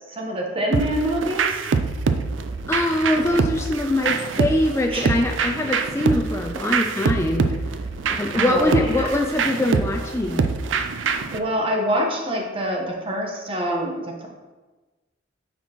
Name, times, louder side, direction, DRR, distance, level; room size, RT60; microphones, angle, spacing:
voice 1, 0.1-1.6 4.9-5.1 8.3-9.1 11.0-14.3, equal, 30° right, 0 dB, 1.0 m, -26 dB
sound 1, 0.7-11.4, right 5 dB, 90° right, 0.4 m, -25 dB
voice 2, 2.7-7.5 8.2-10.4, left 1 dB, 15° left, 2 dB, 0.4 m, -23 dB
9.3 x 4.3 x 2.9 m, 1.2 s
head